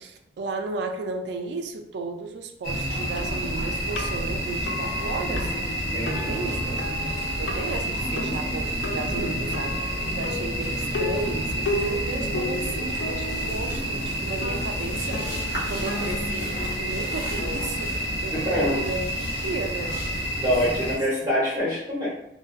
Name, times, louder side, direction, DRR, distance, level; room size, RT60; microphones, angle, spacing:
voice 1, 0.0-6.8 7.4-15.3 15.7-19.1 19.4-20.0 20.5-21.0, right 3 dB, 70° right, 5 dB, 0.3 m, -34 dB
sound 1, 2.6-21.0, right 1 dB, 55° left, 0.8 m, -29 dB
sound 2, 3.2-18.5, left 2 dB, 70° left, 0.3 m, -35 dB
voice 2, 5.9-6.3 18.4-18.8 20.4-22.1, equal, 25° right, -9 dB, 0.9 m, -25 dB
sound 3, 6.3-17.7, equal, 40° left, 1.2 m, -44 dB
2.5 x 2.2 x 2.3 m, 0.80 s
head